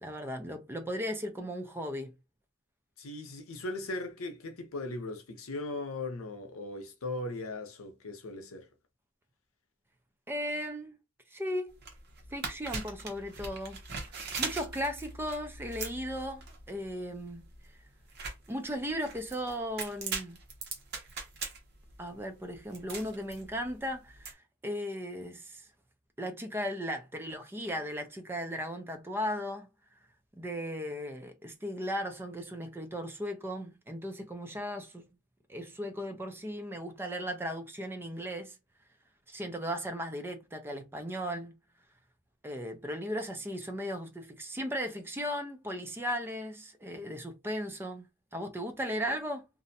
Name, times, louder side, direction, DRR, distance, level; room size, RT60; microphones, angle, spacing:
voice 1, 0.0-2.1 10.3-11.0 11.3-11.8 12.3-13.8 14.4-17.4 18.5-20.4 22.0-25.7 26.2-29.7 30.4-35.1 35.5-38.6 39.3-41.5 42.4-48.1 48.3-49.5, equal, 10° right, 0.4 m, -36 dB
voice 2, 3.0-8.7, left 2 dB, 85° left, 0.7 m, -38 dB
sound 1, 11.7-24.3, right 4 dB, 55° right, 0.8 m, -41 dB
2.5 x 2.0 x 2.6 m
head